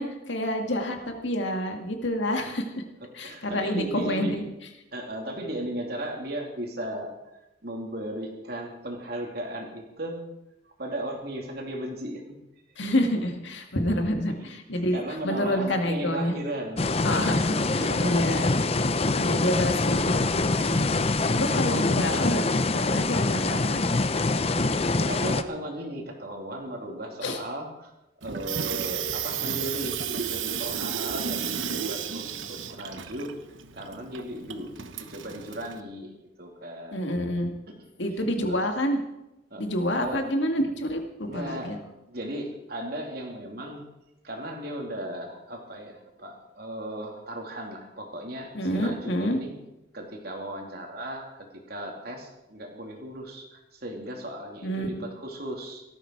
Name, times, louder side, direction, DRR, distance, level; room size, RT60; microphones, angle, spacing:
voice 1, 0.0-2.7 3.1-4.4 12.8-16.3 17.0-18.5 19.2-20.9 21.3-22.4 22.9-23.9 27.2-27.4 36.9-37.5 38.0-39.0 39.6-41.8 48.5-49.4 54.6-54.9, equal, 70° left, 4 dB, 2.0 m, -28 dB
voice 2, 3.0-4.5 4.9-7.2 7.6-10.2 10.8-12.3 12.8-12.9 14.7-16.9 17.8-18.3 24.4-27.9 28.2-33.3 33.7-37.1 37.7-37.8 38.5-38.6 39.5-39.6 40.0-40.3 41.3-41.8 42.1-43.8 44.2-49.5 49.9-55.8, right 1 dB, 50° right, 1 dB, 3.1 m, -36 dB
sound 1, 16.8-25.4, left 3 dB, 30° left, 0.6 m, -25 dB
Water tap faucet / Sink (filling or washing), 28.2-35.8, right 8 dB, 80° right, 1.0 m, -33 dB
18.0 x 13.5 x 4.8 m, 0.92 s
head